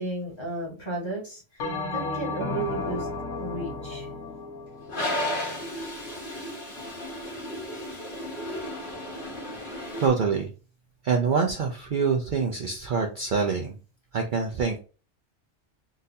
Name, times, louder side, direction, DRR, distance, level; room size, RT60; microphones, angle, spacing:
voice 1, 0.0-1.6 1.9-3.1 3.4-4.1, right 2 dB, 25° left, -2 dB, 1.4 m, -33 dB
Bell, 1.6-6.2, left 3 dB, 85° left, 1.2 m, -34 dB
Toilet flush, 4.9-10.1, left 1 dB, 45° left, 1.3 m, -33 dB
voice 2, 10.0-10.5 11.0-13.8 14.1-14.8, right 5 dB, 55° right, 2 dB, 0.6 m, -25 dB
3.9 x 2.6 x 2.7 m, 0.35 s
omnidirectional pair, 1.2 m